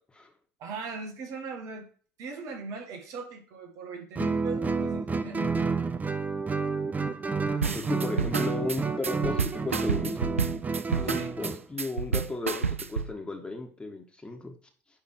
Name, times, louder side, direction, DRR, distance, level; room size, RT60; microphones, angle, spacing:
voice 1, 0.6-1.9 2.2-5.5 10.9-11.3, right 4 dB, 55° right, 4 dB, 1.9 m, -39 dB
Guitar, 4.2-11.6, right 4 dB, 25° right, 0.8 m, -30 dB
sound 1, 7.6-13.1, right 5 dB, 90° right, 0.4 m, -30 dB
voice 2, 7.7-10.5 10.9-14.5, left 3 dB, 15° left, 3 dB, 1.8 m, -35 dB
10.5 x 3.8 x 4.7 m, 0.42 s
figure-of-eight pair, 65°, 7 cm